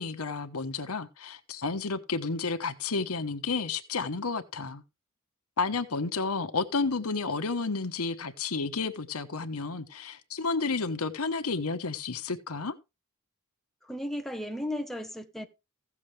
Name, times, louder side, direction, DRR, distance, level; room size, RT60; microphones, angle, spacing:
voice 1, 0.0-4.8 5.6-12.7, left 4 dB, 90° left, 1.1 m, -31 dB
voice 2, 13.8-15.5, left 1 dB, ahead, 1.1 m, -35 dB
15.5 x 7.2 x 3.3 m
head